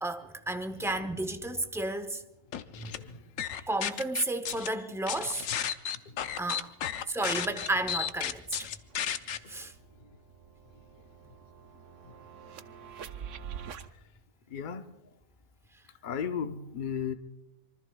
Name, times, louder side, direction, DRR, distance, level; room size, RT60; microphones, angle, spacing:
voice 1, 0.0-2.2 2.8-2.9 3.6-5.5 6.4-6.7 7.1-8.7 9.5-9.7, right 2 dB, 5° right, 0.5 m, -32 dB
sound 1, 2.5-3.0 3.4-4.7 5.1-9.4, left 9 dB, 70° left, 1.1 m, -33 dB
voice 2, 2.6-3.5 6.1-6.2 12.0-12.2 14.5-14.8 16.0-17.1, left 7 dB, 40° left, 0.9 m, -36 dB
sound 2, 8.5-8.6 8.9-13.9, right 8 dB, 65° right, 1.0 m, -46 dB
25.5 x 23.5 x 2.3 m
omnidirectional pair, 1.4 m